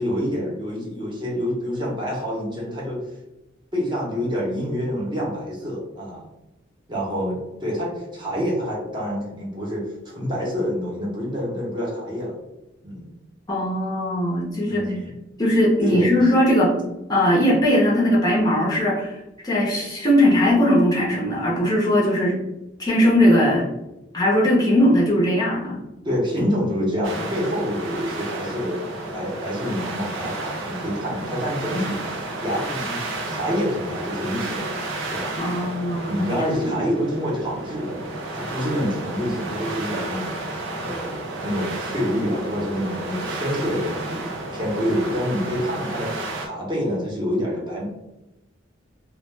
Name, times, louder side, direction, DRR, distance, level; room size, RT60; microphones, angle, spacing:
voice 1, 0.0-3.0 3.7-6.2 6.9-12.4 12.8-13.1 14.7-15.1 15.9-16.3 26.0-34.9 35.1-35.3 36.0-38.0 38.3-40.3 40.8-41.1 41.4-44.3 44.5-48.0, equal, 25° right, -4 dB, 0.7 m, -27 dB
voice 2, 13.5-14.8 15.4-16.7 17.1-19.2 19.4-22.4 22.8-23.7 24.1-25.8 35.4-36.8, equal, 20° left, -5 dB, 0.5 m, -19 dB
sound 1, 27.0-46.5, right 2 dB, 80° right, 0.5 m, -32 dB
2.2 x 2.0 x 3.2 m, 0.96 s
head